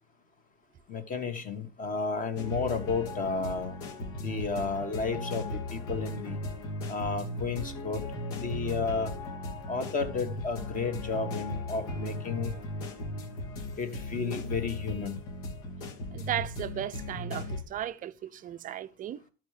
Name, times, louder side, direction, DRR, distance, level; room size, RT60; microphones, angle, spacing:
voice 1, 0.9-3.8 4.2-6.4 6.9-8.0 8.3-9.1 9.7-12.5 13.8-15.2, left 4 dB, 25° left, 1.5 m, -32 dB
sound 1, 2.4-17.6, left 1 dB, 70° left, 2.3 m, -37 dB
voice 2, 16.1-19.2, right 11 dB, 25° right, 0.5 m, -36 dB
12.5 x 4.7 x 5.0 m
cardioid pair, 150°, 31 cm